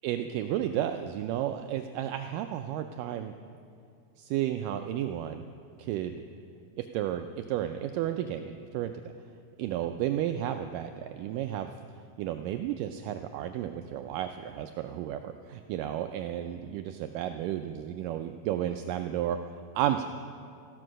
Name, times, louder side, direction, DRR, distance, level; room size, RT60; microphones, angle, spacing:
voice 1, 0.0-3.3 4.2-5.4 5.8-6.2 6.8-8.9 9.6-11.7 12.2-19.4 19.8-20.1, right 11 dB, 85° right, 7 dB, 1.9 m, -32 dB
14.5 x 12.5 x 6.3 m, 2.3 s
omnidirectional pair, 4.3 m